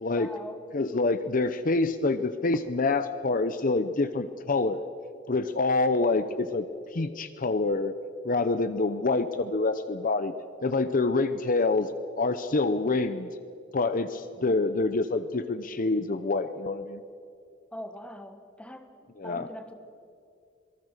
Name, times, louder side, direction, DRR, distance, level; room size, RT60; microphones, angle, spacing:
voice 1, 0.1-0.6 17.7-18.9 19.2-19.7, left 1 dB, 5° left, 8 dB, 1.5 m, -42 dB
voice 2, 0.7-4.8 5.3-8.0 8.2-10.3 10.6-11.9 12.2-13.3 13.7-17.0 19.2-19.5, left 3 dB, 45° left, 11 dB, 0.7 m, -26 dB
26.0 x 19.0 x 6.6 m, 2.4 s
head